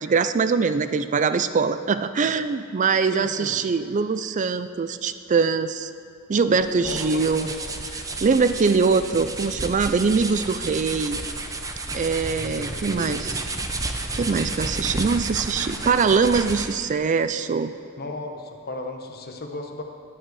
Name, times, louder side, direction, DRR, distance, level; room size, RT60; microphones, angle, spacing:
voice 1, 0.0-5.9 6.3-7.5 8.2-11.2 11.9-13.3 14.1-17.7, right 5 dB, 35° right, 12 dB, 0.4 m, -22 dB
voice 2, 3.1-3.5 6.8-7.6 12.3-13.2 18.0-19.8, left 2 dB, 50° left, 4 dB, 1.2 m, -35 dB
sound 1, 6.5-16.9, right 2 dB, 15° right, 0.8 m, -32 dB
17.5 x 9.4 x 4.8 m, 2.5 s
head